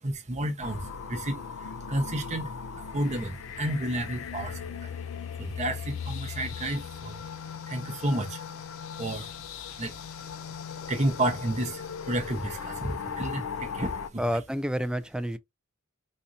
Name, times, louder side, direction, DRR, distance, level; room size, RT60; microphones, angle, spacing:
voice 1, 0.0-8.5 8.8-14.4, right 1 dB, 35° right, 0.8 m, -32 dB
sound 1, 0.6-14.1, left 7 dB, 70° left, 0.4 m, -38 dB
voice 2, 14.2-15.4, equal, 5° right, 0.3 m, -29 dB
4.2 x 2.6 x 2.5 m
head